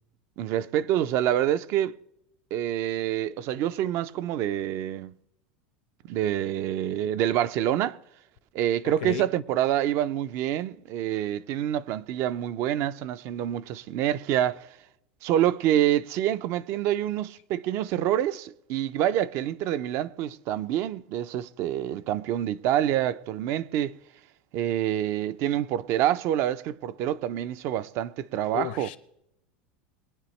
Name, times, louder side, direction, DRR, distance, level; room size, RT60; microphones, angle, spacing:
voice 1, 0.4-2.0 2.5-5.1 6.1-8.0 8.5-14.7 15.2-23.9 24.5-28.9, right 11 dB, 55° right, 0.5 m, -27 dB
voice 2, 28.5-29.0, left 12 dB, 75° left, 1.0 m, -32 dB
22.0 x 9.7 x 3.2 m
hypercardioid pair, 105°, 5 cm